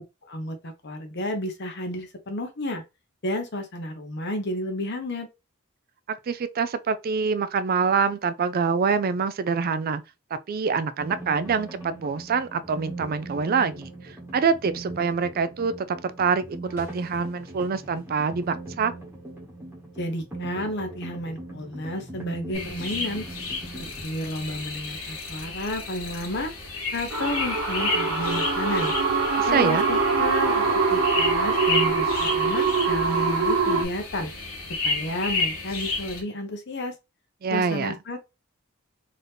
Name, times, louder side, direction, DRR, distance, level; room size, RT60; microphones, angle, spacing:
voice 1, 0.2-2.8 3.2-5.3 20.0-23.2 23.7-26.5 26.9-28.9 29.5-30.6 30.9-34.3 34.8-36.9 37.5-38.2, left 1 dB, 55° left, 0.9 m, -31 dB
voice 2, 6.1-10.0 10.5-18.9 29.4-29.8 37.4-38.0, right 5 dB, 45° right, 0.4 m, -25 dB
sound 1, 11.0-24.0, right 2 dB, 10° right, 1.2 m, -40 dB
sound 2, 22.5-36.2, left 3 dB, 75° left, 1.7 m, -32 dB
sound 3, 27.1-33.8, right 4 dB, 75° right, 1.4 m, -23 dB
3.8 x 2.8 x 3.3 m
head